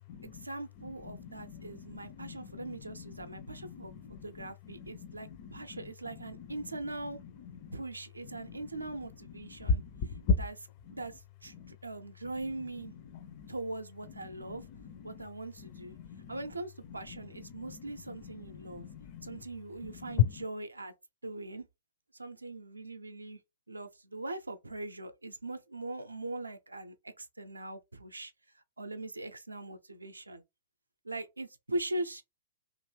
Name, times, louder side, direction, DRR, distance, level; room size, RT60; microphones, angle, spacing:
voice 1, 0.2-3.9 4.2-7.2 7.7-9.8 10.4-10.5 10.9-12.9 13.5-14.6 15.0-16.0 16.3-18.9 19.2-20.9 21.2-21.6 22.1-23.4 23.7-28.3 28.8-30.4 31.0-32.2, right 2 dB, 85° right, 0.4 m, -41 dB
voice 2, 0.8-5.9 6.1-6.7 7.4-7.8 8.3-8.6 9.5-10.3 10.9-11.0 11.5-11.8 13.1-13.5 14.3-15.3 15.6-16.4 16.9-18.2 18.4-19.4 19.8-20.4, left 6 dB, 40° left, 0.5 m, -37 dB
2.7 x 2.5 x 3.2 m
figure-of-eight pair, 115°, 0 cm